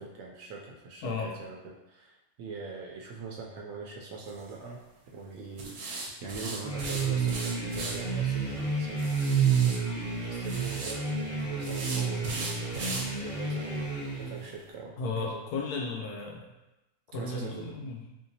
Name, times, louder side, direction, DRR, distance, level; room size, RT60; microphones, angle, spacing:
voice 1, 0.0-4.8 5.1-9.4 9.9-13.9 14.2-15.4 17.1-17.7, right 4 dB, 70° right, -1 dB, 0.9 m, -42 dB
voice 2, 1.0-1.3 15.0-16.4 17.1-18.1, left 4 dB, 85° left, 0 dB, 1.2 m, -34 dB
sound 1, 4.2-4.5 5.6-8.0 9.0-9.8 10.4-10.9 11.6-13.1 13.5-13.6 14.0-14.1 14.5-14.6, right 3 dB, 90° right, 1.2 m, -37 dB
sound 2, 6.6-14.4, right 5 dB, 25° right, 1.1 m, -30 dB
3.8 x 2.7 x 2.7 m, 0.96 s
omnidirectional pair, 1.6 m